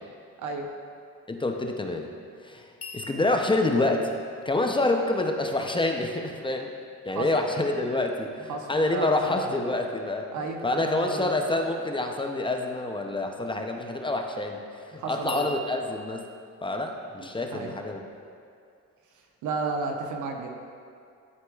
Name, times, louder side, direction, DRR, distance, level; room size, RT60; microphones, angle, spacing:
voice 1, 1.3-2.1 2.4-4.2 4.5-6.7 7.0-10.3 10.6-14.6 14.9-16.3 16.6-18.0, left 2 dB, 15° left, 3 dB, 0.5 m, -27 dB
sound 1, 2.8-5.9 15.3-16.1, left 2 dB, 50° left, 1.0 m, -44 dB
voice 2, 7.1-7.4 8.5-9.5 10.3-11.3 15.0-15.5 17.5-17.7 19.4-20.5, right 4 dB, 80° right, 3 dB, 0.8 m, -33 dB
11.0 x 4.7 x 2.3 m, 2.3 s
cardioid pair, 90°, 30 cm